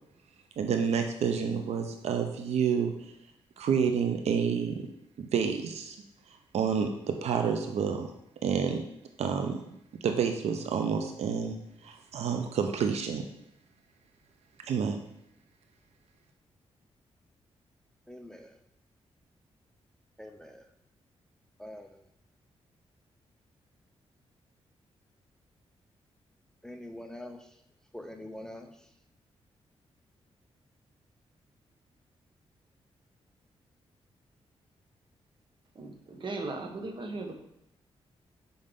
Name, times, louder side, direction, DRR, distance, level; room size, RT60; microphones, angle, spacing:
voice 1, 0.6-2.9 3.6-4.7 5.2-6.0 6.5-8.1 8.4-8.8 9.2-9.8 10.0-11.6 11.8-13.2 14.7-15.0, right 6 dB, 80° right, 5 dB, 0.7 m, -29 dB
voice 2, 18.1-18.6 20.2-20.6 21.6-22.1 26.6-27.6 27.9-28.9, left 1 dB, 5° left, 5 dB, 0.6 m, -45 dB
voice 3, 35.7-37.3, right 3 dB, 50° right, 3 dB, 1.2 m, -37 dB
7.1 x 5.3 x 3.7 m, 0.80 s
cardioid pair, 100°, 11 cm